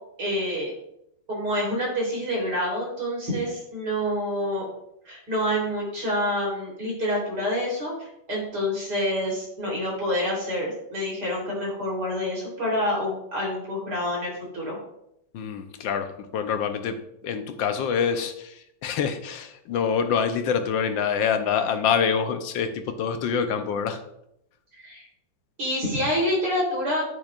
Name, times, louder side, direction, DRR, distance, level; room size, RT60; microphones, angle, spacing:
voice 1, 0.2-0.7 1.3-4.6 5.1-14.8 24.7-25.1 25.6-27.0, equal, 50° right, -3 dB, 4.1 m, -27 dB
voice 2, 15.3-17.0 17.2-24.0, left 7 dB, 70° left, 7 dB, 1.4 m, -26 dB
9.5 x 9.3 x 2.4 m, 0.78 s
omnidirectional pair, 2.4 m